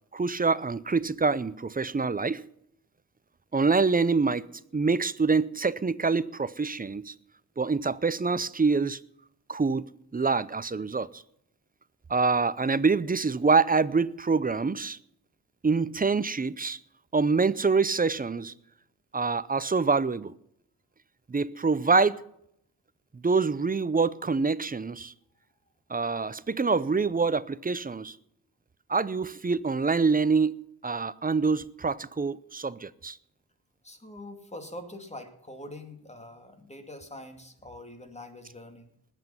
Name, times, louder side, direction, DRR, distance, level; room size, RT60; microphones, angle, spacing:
voice 1, 0.1-2.4 3.5-4.5 4.7-7.1 7.6-9.0 9.5-11.2 12.1-15.0 15.6-16.8 17.1-18.5 19.1-20.3 21.3-22.2 23.1-25.1 25.9-28.2 28.9-30.5 30.8-33.2, right 4 dB, 25° right, 0.6 m, -25 dB
voice 2, 33.8-38.9, left 1 dB, 15° left, 2.4 m, -44 dB
20.0 x 8.2 x 5.7 m
wide cardioid pair, 100°, 38 cm